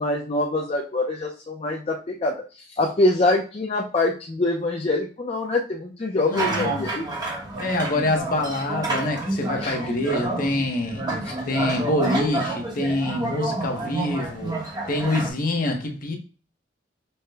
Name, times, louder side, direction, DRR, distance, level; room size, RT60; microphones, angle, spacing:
voice 1, 0.0-2.4 2.8-7.1 9.5-9.9 11.2-11.3, left 2 dB, 35° left, 0.5 m, -24 dB
voice 2, 6.3-6.7 7.6-11.1 11.5-16.2, left 1 dB, 50° left, 0.9 m, -26 dB
sound 1, 6.3-15.3, right 2 dB, 25° right, 1.0 m, -29 dB
5.5 x 2.2 x 3.3 m
head